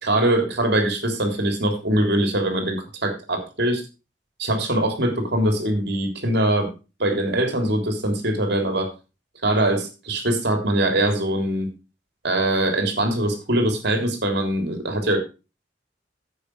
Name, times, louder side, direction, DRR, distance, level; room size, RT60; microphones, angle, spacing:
voice 1, 0.0-3.8 4.4-6.7 7.0-8.9 9.4-11.7 12.2-15.2, right 1 dB, 65° right, 4 dB, 3.4 m, -22 dB
11.0 x 8.3 x 4.7 m, 0.30 s
head